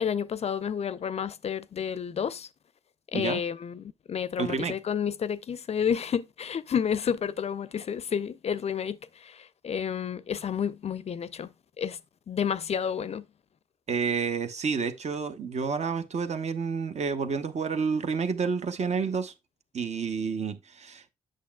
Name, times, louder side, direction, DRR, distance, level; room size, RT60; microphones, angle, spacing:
voice 1, 0.0-2.5 3.1-11.5 11.8-12.0 12.3-13.2, left 7 dB, 40° left, 0.5 m, -30 dB
voice 2, 4.4-4.8 13.9-19.3 19.7-21.1, right 5 dB, 45° right, 0.9 m, -29 dB
8.3 x 6.3 x 2.3 m
hypercardioid pair, 45°, 16 cm